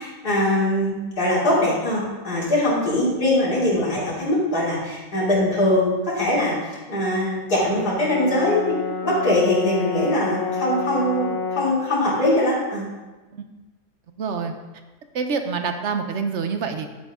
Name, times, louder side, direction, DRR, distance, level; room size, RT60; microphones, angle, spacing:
voice 1, 0.0-8.8 9.0-12.9, left 1 dB, 85° left, -8 dB, 3.6 m, -22 dB
Brass instrument, 7.5-11.8, left 5 dB, 70° left, 1.7 m, -29 dB
voice 2, 14.2-14.5 15.1-16.9, right 5 dB, 55° right, 6 dB, 1.1 m, -26 dB
10.5 x 9.0 x 3.7 m, 1.2 s
omnidirectional pair, 1.6 m